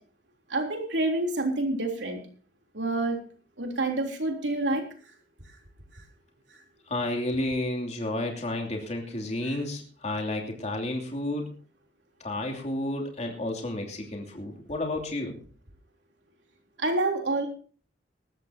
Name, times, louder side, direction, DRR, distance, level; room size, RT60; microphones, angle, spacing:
voice 1, 0.5-2.2 2.7-3.2 3.6-4.9 16.8-17.5, right 2 dB, 80° right, 2 dB, 3.5 m, -27 dB
voice 2, 6.9-11.5 12.2-15.4, left 1 dB, 40° left, 1 dB, 2.8 m, -31 dB
19.5 x 14.0 x 2.9 m, 0.39 s
head